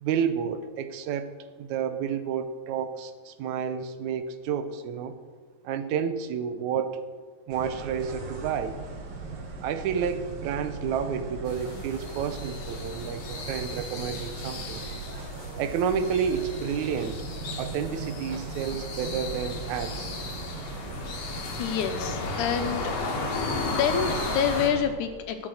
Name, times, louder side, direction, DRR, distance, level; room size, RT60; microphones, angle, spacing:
voice 1, 0.0-1.3 1.6-5.2 5.6-7.0 7.5-8.8 9.6-14.8 15.6-17.2 17.6-20.2, right 7 dB, 80° right, 11 dB, 2.1 m, -30 dB
sound 1, 7.5-24.9, right 3 dB, 60° right, 2.5 m, -38 dB
sound 2, 11.5-24.7, left 3 dB, 60° left, 2.7 m, -35 dB
voice 2, 21.0-22.9 23.7-25.5, left 8 dB, 90° left, 7 dB, 2.4 m, -28 dB
13.0 x 9.0 x 6.4 m, 1.5 s
omnidirectional pair, 3.4 m